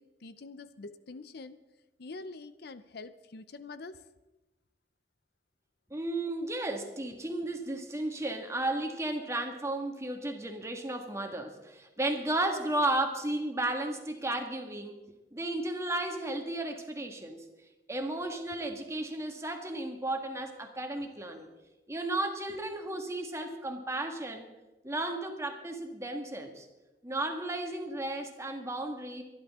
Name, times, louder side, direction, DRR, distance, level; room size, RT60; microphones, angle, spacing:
voice 1, 0.0-1.6 2.0-4.0, left 3 dB, 65° left, 13 dB, 0.6 m, -45 dB
voice 2, 5.9-15.0 15.3-17.5 17.9-21.5 21.9-24.5 24.8-26.7 27.0-29.2, right 1 dB, 15° right, 4 dB, 1.7 m, -34 dB
24.0 x 11.0 x 3.7 m, 1.0 s
head